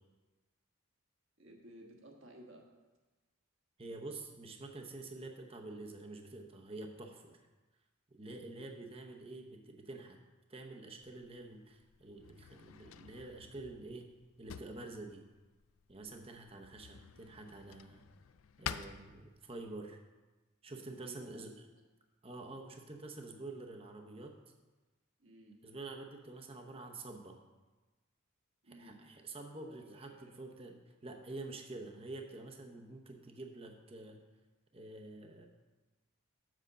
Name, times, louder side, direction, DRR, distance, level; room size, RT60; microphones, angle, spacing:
voice 1, 1.4-2.6 21.0-21.4 25.2-25.6 28.6-29.0 29.7-30.2, right 1 dB, 60° right, 0 dB, 1.4 m, -55 dB
voice 2, 3.8-7.4 8.1-10.2 10.5-14.1 14.4-15.2 15.9-18.0 18.6-20.0 20.6-21.5 22.2-24.3 25.6-27.4 28.8-34.2 34.7-35.5, right 2 dB, 25° right, 2 dB, 0.8 m, -47 dB
Drawer open or close, 11.0-19.8, left 8 dB, 75° left, 0.4 m, -50 dB
7.6 x 5.1 x 6.7 m, 1.2 s
head